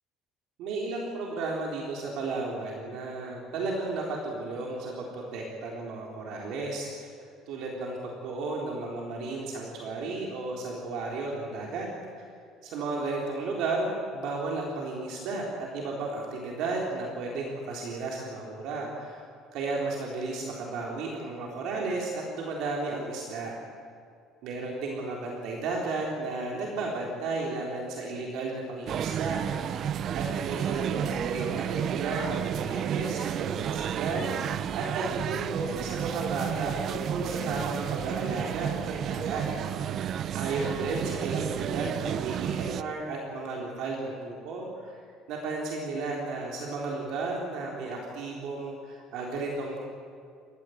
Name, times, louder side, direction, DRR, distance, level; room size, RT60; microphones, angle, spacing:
voice 1, 0.6-11.9 12.2-12.3 12.6-15.5 15.7-19.2 19.5-23.5 24.4-29.4 29.7-39.4 39.9-40.0 40.3-45.0 45.3-49.8, right 3 dB, 65° right, -1 dB, 3.7 m, -33 dB
sound 1, 28.9-42.8, right 9 dB, 45° right, 0.6 m, -31 dB
29.0 x 14.5 x 8.0 m, 2.3 s
cardioid pair, 150°, 0 cm